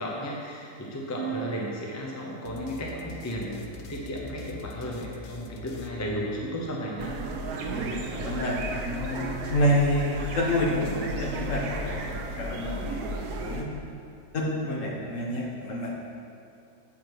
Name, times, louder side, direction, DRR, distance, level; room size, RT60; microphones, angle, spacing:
voice 1, 0.0-3.6 3.9-7.2, equal, 15° left, -2 dB, 0.6 m, -34 dB
sound 1, 1.2-4.9, right 8 dB, 50° right, 1.0 m, -41 dB
sound 2, 2.4-6.7, left 6 dB, 75° left, 1.1 m, -44 dB
sound 3, 7.0-13.6, right 1 dB, 70° right, 1.2 m, -34 dB
voice 2, 7.7-13.7 14.3-16.0, equal, 55° left, -3 dB, 1.5 m, -28 dB
7.4 x 6.6 x 4.6 m, 2.6 s
omnidirectional pair, 1.7 m